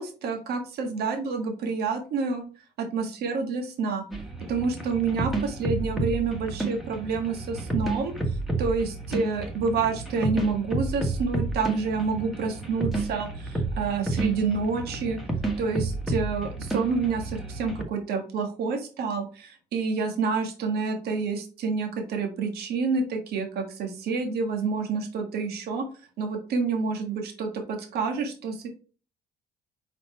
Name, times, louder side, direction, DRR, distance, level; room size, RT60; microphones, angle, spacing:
voice 1, 0.0-2.5 2.8-4.0 4.5-8.1 8.6-15.2 15.6-25.9 26.2-28.7, right 4 dB, 70° right, 4 dB, 1.5 m, -28 dB
sound 1, 4.1-17.8, right 2 dB, ahead, 1.4 m, -31 dB
5.6 x 4.1 x 4.3 m, 0.38 s
cardioid pair, 110°, 17 cm